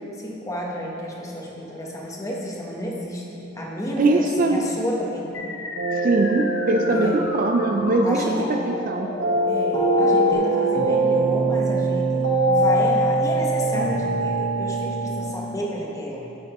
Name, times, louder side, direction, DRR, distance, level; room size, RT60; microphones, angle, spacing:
voice 1, 0.2-5.5 6.8-7.2 8.0-8.6 9.5-16.3, equal, 15° left, -3 dB, 1.0 m, -31 dB
voice 2, 4.0-4.6 6.0-8.2 8.7-9.1, right 2 dB, 45° right, 4 dB, 0.4 m, -21 dB
sound 1, 5.3-10.3, left 2 dB, 65° left, 0.9 m, -34 dB
sound 2, 5.8-15.2, right 2 dB, 80° right, 1.3 m, -23 dB
9.6 x 8.7 x 3.0 m, 3.0 s
head